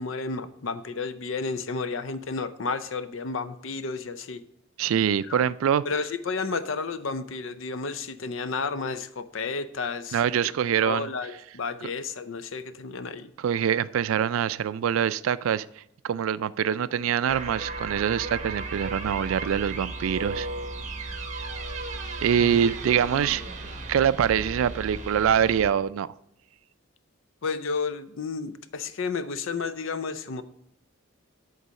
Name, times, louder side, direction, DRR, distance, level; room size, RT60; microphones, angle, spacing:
voice 1, 0.0-4.4 5.2-5.4 5.8-10.2 10.8-13.3 22.4-22.6 27.4-30.4, left 4 dB, 70° left, 12 dB, 0.5 m, -32 dB
voice 2, 4.8-5.8 10.1-11.1 13.4-15.7 16.0-20.5 22.2-23.4 23.9-26.1, right 8 dB, 80° right, 17 dB, 0.3 m, -24 dB
sound 1, 17.3-25.7, right 3 dB, 35° right, 1.0 m, -35 dB
8.2 x 3.9 x 6.2 m, 0.77 s
head